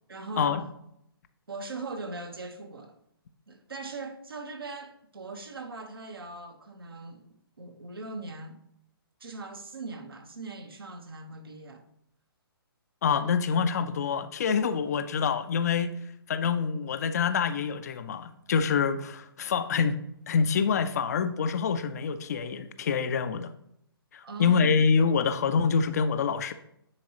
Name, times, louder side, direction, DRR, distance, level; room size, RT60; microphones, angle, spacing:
voice 1, 0.1-0.6 1.5-3.0 3.5-8.6 9.2-11.9 16.4-16.5 24.2-24.7, right 3 dB, 70° right, 1.2 m, -40 dB
voice 2, 13.0-15.9 16.3-20.0 20.3-23.5 24.1-26.5, left 6 dB, 40° left, 0.5 m, -26 dB
9.5 x 4.7 x 2.9 m
figure-of-eight pair, 130°, 13 cm